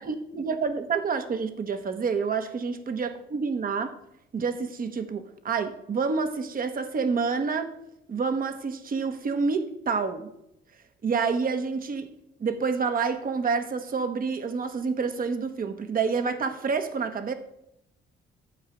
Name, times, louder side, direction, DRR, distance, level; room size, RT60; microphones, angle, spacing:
voice 1, 0.0-3.9 4.3-7.7 8.1-10.3 11.0-12.1 12.4-17.3, right 5 dB, 45° right, 8 dB, 1.3 m, -28 dB
12.5 x 4.9 x 7.8 m, 0.81 s
cardioid pair, 90°, 20 cm